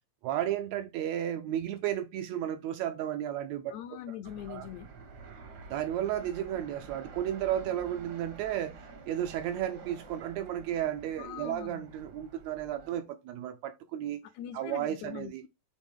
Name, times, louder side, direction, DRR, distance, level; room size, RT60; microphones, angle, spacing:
voice 1, 0.2-3.8 4.5-4.7 5.7-14.2 14.5-15.4, right 11 dB, 80° right, 1.7 m, -33 dB
voice 2, 3.7-4.9 11.2-11.9 14.2-15.5, left 11 dB, 80° left, 1.7 m, -42 dB
Fixed-wing aircraft airplane, 4.2-12.9, right 4 dB, 60° right, 1.0 m, -49 dB
7.4 x 4.0 x 3.6 m
omnidirectional pair, 3.5 m